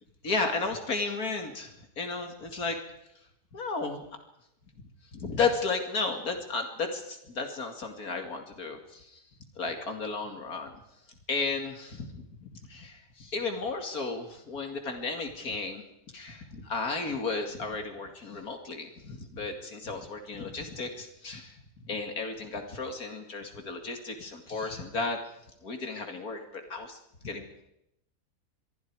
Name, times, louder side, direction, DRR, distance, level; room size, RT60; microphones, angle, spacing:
voice 1, 0.2-2.8 3.5-3.9 5.1-9.2 9.6-10.7 11.3-12.2 12.7-15.8 16.1-21.6 21.9-25.2 25.6-27.0 27.2-27.4, left 4 dB, 75° left, 5 dB, 2.8 m, -33 dB
27.0 x 22.5 x 4.8 m, 0.80 s
omnidirectional pair, 1.6 m